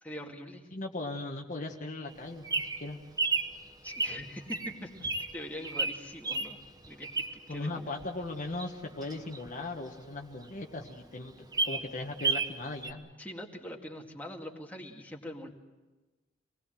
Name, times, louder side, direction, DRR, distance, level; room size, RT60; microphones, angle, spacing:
voice 1, 0.0-0.7 3.8-6.6 6.9-7.9 13.2-15.5, left 1 dB, 10° left, 0 dB, 2.2 m, -43 dB
voice 2, 0.7-3.0 7.5-11.3 11.6-13.1, left 2 dB, 40° left, 2 dB, 1.5 m, -38 dB
Bird vocalization bird call bird song, 2.1-7.6 8.0-10.2 10.6-10.7 10.9-11.0 11.3-12.6 12.8-12.9, right 3 dB, 20° right, 1.2 m, -32 dB
26.0 x 20.0 x 7.6 m, 1.1 s
head